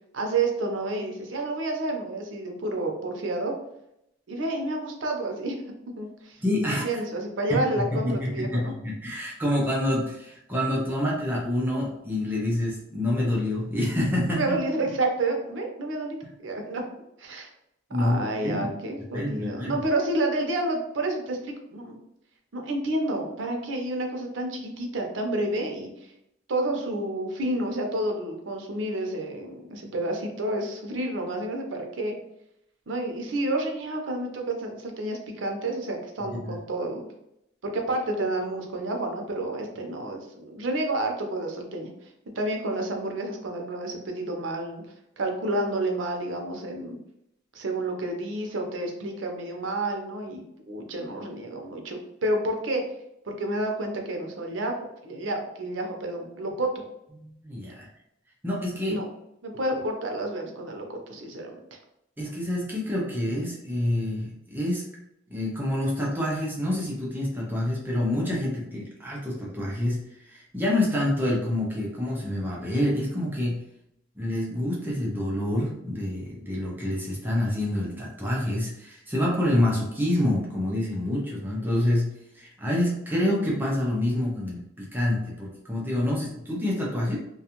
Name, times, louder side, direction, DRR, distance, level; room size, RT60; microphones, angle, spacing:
voice 1, 0.1-3.5 4.3-5.6 6.0-8.7 14.3-16.2 16.4-16.8 17.2-17.5 18.0-22.0 22.5-26.1 26.5-32.2 32.9-37.0 37.7-42.1 42.4-44.8 45.2-47.0 47.5-52.8 53.3-54.8 55.0-56.7 58.9-59.1 59.4-61.8, right 2 dB, 75° right, 2 dB, 0.6 m, -30 dB
voice 2, 6.4-6.9 7.5-14.6 17.9-18.7 19.1-19.8 36.2-36.6 57.1-57.9 58.4-59.0 62.2-64.8 65.3-73.6 74.2-87.2, left 1 dB, 10° right, -4 dB, 0.5 m, -27 dB
2.5 x 2.3 x 2.8 m, 0.80 s
head